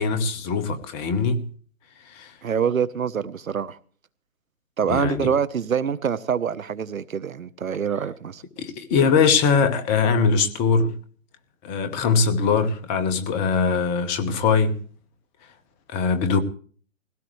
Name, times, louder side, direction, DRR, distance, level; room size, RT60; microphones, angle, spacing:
voice 1, 0.0-1.4 2.0-2.3 4.9-5.3 8.6-10.9 11.6-14.8 15.9-16.4, left 5 dB, 15° left, 1.1 m, -21 dB
voice 2, 2.4-3.8 4.8-8.4, right 7 dB, 80° right, 1.0 m, -25 dB
20.0 x 17.0 x 3.1 m
hypercardioid pair, 145°, 40 cm